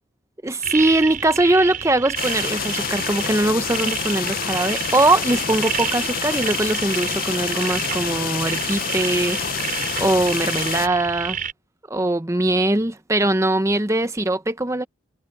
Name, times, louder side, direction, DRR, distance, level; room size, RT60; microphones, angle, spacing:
voice 1, 0.4-9.7 10.0-11.4 11.9-14.9, right 2 dB, 15° right, 0.8 m, -21 dB
sound 1, 0.6-11.5, right 8 dB, 45° right, 5.4 m, -29 dB
sound 2, 2.2-10.9, left 8 dB, 50° left, 0.6 m, -28 dB
head